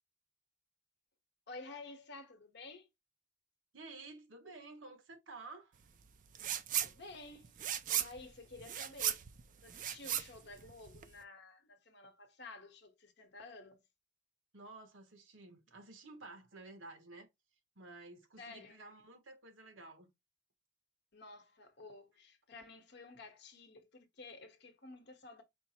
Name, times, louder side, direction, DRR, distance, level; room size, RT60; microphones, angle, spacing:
voice 1, 1.5-2.9 6.7-7.6 7.9-9.2 9.6-13.8 18.4-18.8 21.1-25.4, left 3 dB, 60° left, 1.0 m, -52 dB
voice 2, 3.7-5.8 14.5-17.3 17.7-20.1, right 3 dB, 80° right, 1.1 m, -52 dB
sound 1, 6.3-6.9 7.2-11.2, right 10 dB, 40° right, 0.4 m, -36 dB
4.5 x 2.0 x 4.1 m
head